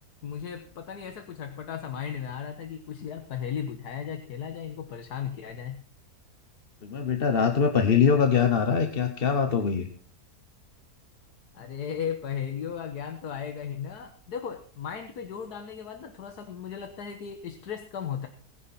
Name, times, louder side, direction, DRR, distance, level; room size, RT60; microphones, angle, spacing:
voice 1, 0.2-5.8 11.5-18.3, left 8 dB, 80° left, 6 dB, 1.8 m, -36 dB
voice 2, 6.8-9.9, left 6 dB, 40° left, 6 dB, 1.2 m, -23 dB
19.5 x 10.0 x 4.3 m, 0.43 s
omnidirectional pair, 1.7 m